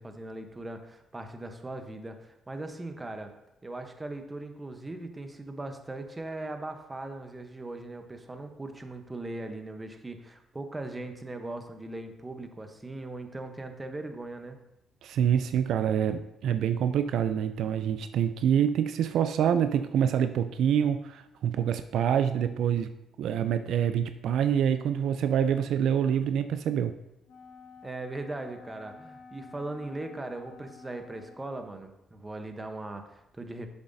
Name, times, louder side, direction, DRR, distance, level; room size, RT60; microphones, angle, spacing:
voice 1, 0.0-3.3 3.6-14.6 27.8-33.7, right 2 dB, 20° right, 6 dB, 0.9 m, -39 dB
voice 2, 15.0-22.9 23.2-26.9, right 9 dB, 75° right, 10 dB, 0.3 m, -26 dB
Wind instrument woodwind instrument, 27.3-31.6, left 5 dB, 85° left, 1.7 m, -51 dB
7.6 x 7.1 x 2.7 m, 0.88 s
cardioid pair, 90°, 0 cm